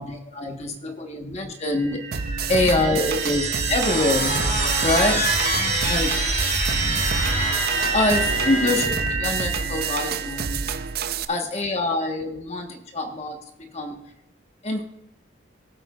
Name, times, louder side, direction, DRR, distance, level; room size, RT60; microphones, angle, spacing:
voice 1, 0.0-2.0 2.5-4.4 4.8-5.2 5.9-6.2 7.9-10.6 11.3-14.0 14.6-14.8, left 2 dB, 35° left, 3 dB, 1.2 m, -25 dB
sound 1, 1.7-11.0, right 4 dB, 35° right, 1.3 m, -27 dB
sound 2, 2.1-11.3, right 5 dB, 50° right, 0.5 m, -29 dB
sound 3, 3.8-8.9, left 2 dB, 50° left, 3.1 m, -29 dB
18.0 x 8.1 x 2.4 m, 0.86 s
head